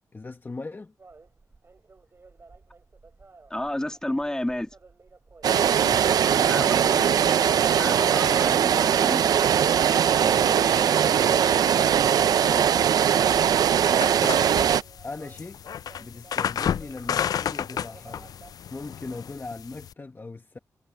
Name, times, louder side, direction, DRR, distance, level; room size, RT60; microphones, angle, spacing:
voice 1, 0.1-0.9 5.7-7.4 10.1-11.5 15.0-15.6 16.0-18.4 18.7-20.6, left 3 dB, 35° left, 1.4 m, -39 dB
sound 1, 1.0-18.6, right 3 dB, 40° right, 3.9 m, -53 dB
voice 2, 3.5-4.8 6.5-6.7 7.8-9.4 12.4-12.7, left 1 dB, 10° left, 2.1 m, -31 dB
sound 2, 5.4-14.8, right 8 dB, 90° right, 0.5 m, -21 dB
sound 3, 14.0-19.9, left 8 dB, 80° left, 0.3 m, -31 dB
cardioid pair, 70°, 6 cm